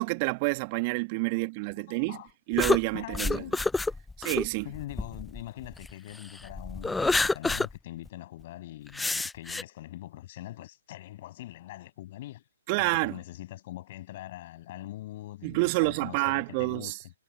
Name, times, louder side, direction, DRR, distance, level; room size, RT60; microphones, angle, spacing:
voice 1, 0.0-2.2 2.5-3.4 4.2-4.6 12.7-13.2 15.4-17.0, right 28 dB, 30° right, 1.7 m, -28 dB
voice 2, 1.8-2.3 2.9-3.6 4.6-12.4 12.8-17.1, left 15 dB, 40° left, 7.3 m, -43 dB
sound 1, 2.6-5.9 6.4-7.7 8.1-8.2 8.9-9.6, left 3 dB, 5° left, 0.7 m, -28 dB
figure-of-eight pair, 125°, 0 cm